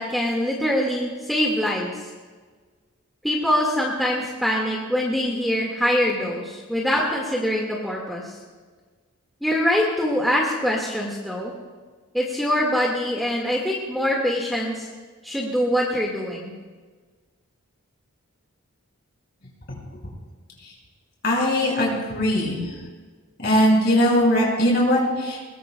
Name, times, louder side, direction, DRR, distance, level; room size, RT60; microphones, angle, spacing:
voice 1, 0.0-2.0 3.2-8.3 9.4-11.5 12.1-14.9 15.2-16.5, equal, ahead, -3 dB, 1.7 m, -24 dB
voice 2, 21.2-22.6 23.4-25.5, equal, 45° left, -3 dB, 5.3 m, -20 dB
21.0 x 21.0 x 2.2 m, 1.4 s
head